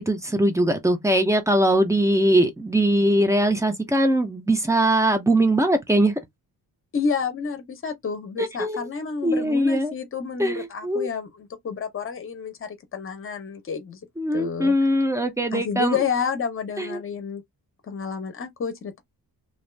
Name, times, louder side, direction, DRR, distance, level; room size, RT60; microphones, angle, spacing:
voice 1, 0.0-6.1 8.4-8.9 9.2-9.9 10.4-11.1 14.2-16.0 16.8-17.0, right 1 dB, 10° right, 0.5 m, -21 dB
voice 2, 6.9-14.0 14.3-14.7 15.5-17.4 17.9-19.0, left 6 dB, 35° left, 0.7 m, -29 dB
2.5 x 2.3 x 3.1 m
wide cardioid pair, 175°, 39 cm